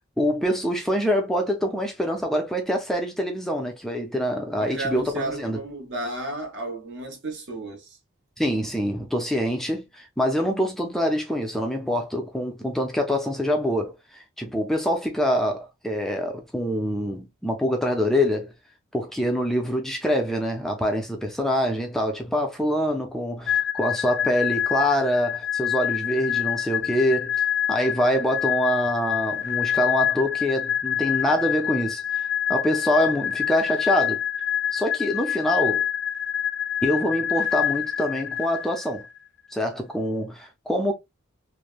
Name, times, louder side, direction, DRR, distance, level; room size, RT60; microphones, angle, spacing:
voice 1, 0.2-5.6 8.4-18.5 18.9-27.3 27.7-32.0 32.5-34.2 34.7-35.8 36.8-39.0 39.5-40.9, equal, ahead, 0.5 m, -25 dB
voice 2, 4.6-8.0, right 2 dB, 60° right, 1.2 m, -33 dB
sound 1, 23.5-39.1, left 9 dB, 60° left, 0.4 m, -26 dB
3.2 x 2.2 x 2.4 m
head